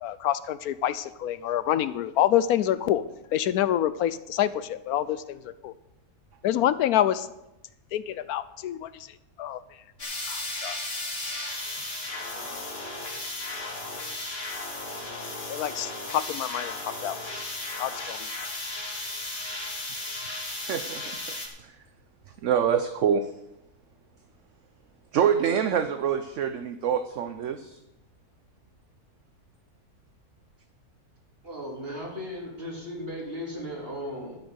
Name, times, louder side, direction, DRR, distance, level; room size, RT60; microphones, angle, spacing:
voice 1, 0.0-3.0 3.3-5.7 6.4-7.3 7.9-9.1 9.4-9.6 10.3-10.8 12.3-12.6 15.5-17.2 17.8-18.3, left 11 dB, 80° left, 15 dB, 1.1 m, -27 dB
sound 1, 10.0-21.5, left 2 dB, 50° left, 2.8 m, -35 dB
voice 2, 20.7-21.2 21.6-21.8 22.4-23.3 25.1-27.8, right 8 dB, 60° right, 9 dB, 0.9 m, -25 dB
voice 3, 31.4-34.4, equal, 40° right, -2 dB, 3.7 m, -36 dB
13.0 x 6.5 x 8.1 m, 0.90 s
omnidirectional pair, 1.6 m